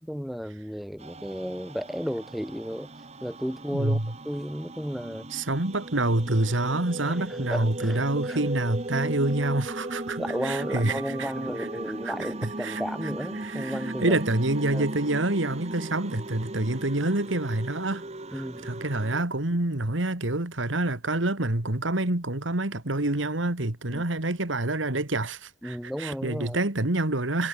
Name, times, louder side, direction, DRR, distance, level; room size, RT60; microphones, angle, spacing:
voice 1, 0.0-2.9 3.2-5.3 7.1-8.4 10.2-14.2 14.7-14.8 18.3-18.7 23.9-24.0 25.6-26.6, equal, ahead, 4.8 m, -33 dB
sound 1, 1.0-19.2, right 2 dB, 35° right, 1.8 m, -37 dB
voice 2, 3.7-4.1 5.3-11.3 11.6-11.7 12.0-12.8 13.4-18.0 18.3-27.5, right 2 dB, 85° right, 2.4 m, -27 dB
head